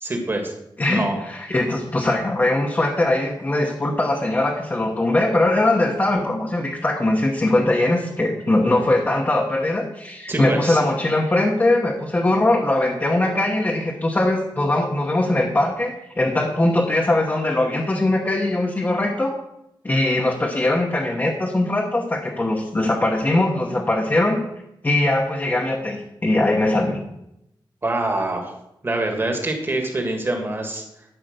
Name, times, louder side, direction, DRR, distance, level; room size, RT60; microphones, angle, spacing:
voice 1, 0.0-0.5 0.9-1.1 10.3-10.8 27.8-28.5 28.8-30.8, right 2 dB, 25° right, 3 dB, 1.8 m, -25 dB
voice 2, 0.8-19.4 19.8-24.4 24.8-27.0, left 2 dB, 20° left, -1 dB, 1.1 m, -21 dB
12.0 x 5.0 x 6.6 m, 0.83 s
wide cardioid pair, 160°, 9 cm